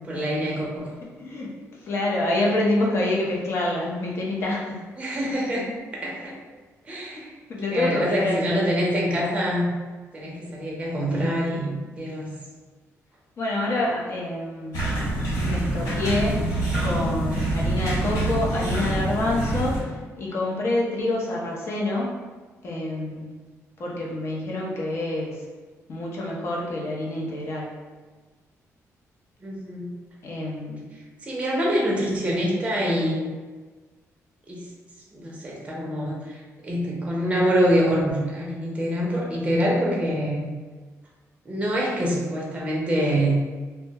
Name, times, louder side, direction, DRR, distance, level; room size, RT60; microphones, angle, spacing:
voice 1, 0.1-0.9 5.0-5.6 5.9-6.4 6.9-7.3 7.7-9.7 10.1-11.7 12.0-12.3 29.4-29.9 31.2-33.2 34.5-34.6 35.1-40.5 41.5-43.4, equal, 20° right, -3 dB, 0.5 m, -25 dB
voice 2, 1.2-1.5 1.9-4.8 7.1-7.2 7.5-8.6 13.4-14.8 15.4-16.4 16.8-19.8 20.2-22.1 22.6-23.4 23.8-25.4 25.9-27.7 30.2-30.8, left 2 dB, 50° left, -4 dB, 0.6 m, -27 dB
sound 1, 14.7-19.8, right 1 dB, 85° left, 1.5 m, -25 dB
2.2 x 2.1 x 2.7 m, 1.4 s
cardioid pair, 140°, 6 cm